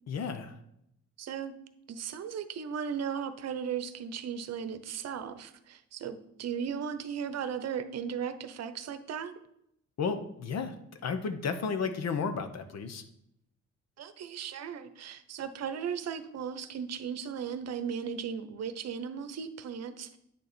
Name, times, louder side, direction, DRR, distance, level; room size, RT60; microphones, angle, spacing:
voice 1, 0.1-0.6 10.0-10.8 11.0-13.0, left 5 dB, 60° left, 9 dB, 1.0 m, -33 dB
voice 2, 1.2-1.5 1.9-9.3 14.0-20.2, right 7 dB, 55° right, 11 dB, 0.8 m, -36 dB
9.2 x 6.5 x 4.3 m, 0.79 s
cardioid pair, 90°, 30 cm